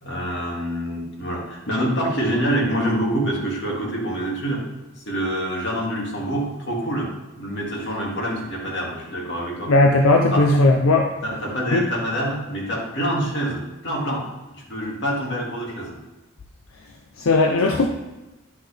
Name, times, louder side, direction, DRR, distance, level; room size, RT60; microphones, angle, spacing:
voice 1, 0.0-4.6 5.1-7.1 7.3-9.7 10.3-10.7 11.2-16.0, right 1 dB, 55° left, -3 dB, 2.3 m, -26 dB
voice 2, 9.7-11.0 11.7-11.8 17.2-17.9, left 2 dB, 85° left, 3 dB, 0.7 m, -17 dB
10.5 x 5.8 x 3.4 m, 1.0 s
head